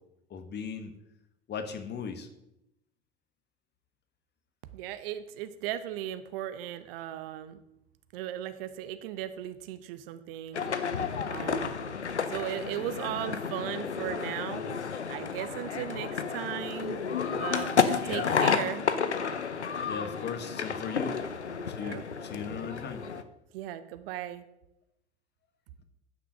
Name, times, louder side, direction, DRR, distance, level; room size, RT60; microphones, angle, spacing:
voice 1, 0.3-0.9 1.5-2.3 18.0-18.3 19.8-21.2 21.7-23.0, left 6 dB, 30° left, 8 dB, 1.4 m, -37 dB
voice 2, 4.7-7.6 8.1-10.6 11.2-11.8 12.3-14.6 15.1-17.0 17.3-18.9 21.0-21.1 21.8-22.0 23.5-24.4, right 12 dB, 55° right, 12 dB, 0.9 m, -37 dB
sound 1, 10.5-23.2, left 6 dB, 90° left, 0.7 m, -31 dB
sound 2, 17.1-20.9 21.2-21.3 21.6-21.7, left 10 dB, 70° left, 3.9 m, -41 dB
10.0 x 6.1 x 6.1 m, 0.87 s
figure-of-eight pair, 80°, 33 cm